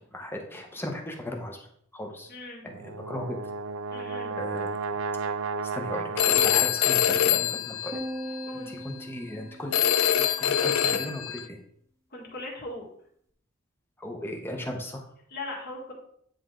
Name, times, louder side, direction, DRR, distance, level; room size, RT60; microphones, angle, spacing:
voice 1, 0.1-1.7 1.9-2.3 2.6-3.3 4.4-4.7 5.7-8.0 8.7-9.7 10.1-11.6 14.0-15.0, left 1 dB, 10° left, 2 dB, 0.9 m, -36 dB
voice 2, 2.3-2.6 3.9-4.3 8.5-8.7 12.1-12.9 15.3-15.9, left 2 dB, 45° left, -2 dB, 1.8 m, -39 dB
Brass instrument, 2.7-6.9, right 4 dB, 70° right, 0.4 m, -33 dB
Telephone, 6.2-8.5 9.7-11.4, left 10 dB, 85° left, 0.4 m, -24 dB
sound 1, 7.9-10.3, equal, 15° right, 0.6 m, -39 dB
9.3 x 3.3 x 3.8 m, 0.66 s
head